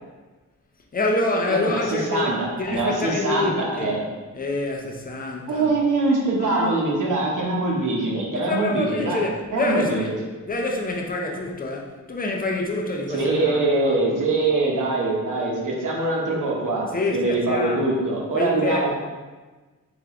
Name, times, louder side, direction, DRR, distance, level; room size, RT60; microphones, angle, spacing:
voice 1, 0.9-4.0 4.3-5.7 6.3-6.8 8.4-10.1 10.5-14.0 16.9-18.0 18.3-18.9, left 2 dB, 30° left, 0 dB, 0.5 m, -27 dB
voice 2, 1.5-4.0 5.5-9.2 9.5-10.1 13.1-18.9, right 2 dB, 75° right, -3 dB, 1.0 m, -23 dB
3.5 x 3.4 x 3.6 m, 1.3 s
wide cardioid pair, 160°, 32 cm